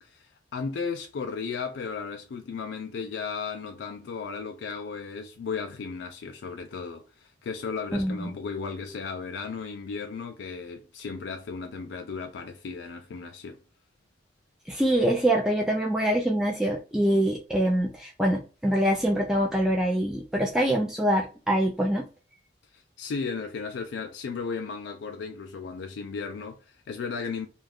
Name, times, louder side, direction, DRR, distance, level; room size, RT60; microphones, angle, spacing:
voice 1, 0.0-13.6 22.7-27.5, left 5 dB, 80° left, 0.3 m, -35 dB
voice 2, 7.9-8.3 14.7-22.0, right 1 dB, 5° right, 0.3 m, -24 dB
2.4 x 2.3 x 3.4 m
head